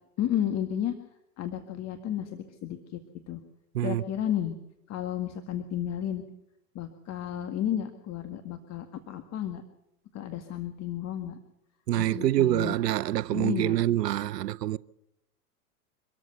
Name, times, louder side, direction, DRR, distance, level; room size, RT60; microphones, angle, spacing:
voice 1, 0.2-0.9 1.4-3.0 3.3-3.4 3.8-4.5 4.9-6.2 6.8-9.6 10.1-11.4 11.9-12.8 13.3-13.8, left 10 dB, 35° left, 1.9 m, -32 dB
voice 2, 11.9-14.8, right 13 dB, 85° right, 0.7 m, -26 dB
25.5 x 14.0 x 8.1 m
hypercardioid pair, 115°, 47 cm